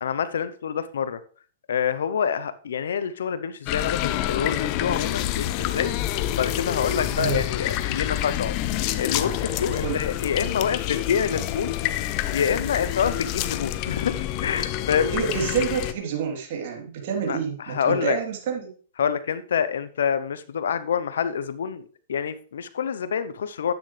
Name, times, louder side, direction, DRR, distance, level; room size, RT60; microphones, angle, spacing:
voice 1, 0.0-1.2 1.7-5.9 6.3-8.5 9.0-11.7 12.3-15.3 17.2-18.2 19.0-23.7, left 7 dB, 75° left, 14 dB, 0.8 m, -27 dB
sound 1, 3.7-15.9, left 13 dB, 45° left, 0.8 m, -28 dB
voice 2, 7.1-7.4 9.8-10.0 15.1-18.7, right 7 dB, 60° right, 1 dB, 3.3 m, -28 dB
11.5 x 9.1 x 3.3 m, 0.43 s
hypercardioid pair, 110°, 0 cm